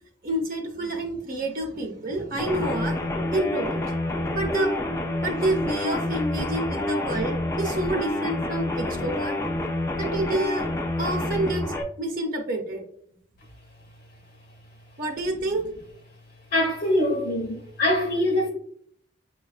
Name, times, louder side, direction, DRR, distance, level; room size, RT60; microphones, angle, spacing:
voice 1, 0.2-3.8 4.3-4.8 5.2-9.4 10.0-10.6 11.0-11.6 12.0-12.8 15.0-15.6, right 1 dB, 50° right, 0.7 m, -28 dB
sound 1, 2.4-11.8, left 1 dB, 15° left, 0.4 m, -28 dB
voice 2, 16.5-18.5, left 1 dB, 50° left, 0.7 m, -23 dB
5.5 x 2.3 x 2.3 m
head